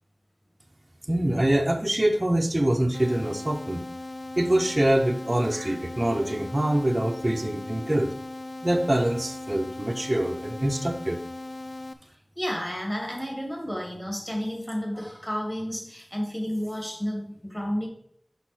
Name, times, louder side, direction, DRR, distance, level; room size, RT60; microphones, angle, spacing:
voice 1, 1.1-3.9 4.4-8.1 8.6-11.2, right 1 dB, 25° right, 0 dB, 0.7 m, -24 dB
sound 1, 2.9-11.9, left 2 dB, 55° left, 0.6 m, -38 dB
voice 2, 12.1-17.9, equal, 20° left, 0 dB, 2.7 m, -31 dB
5.9 x 5.5 x 4.5 m, 0.68 s
wide cardioid pair, 55°, 0 cm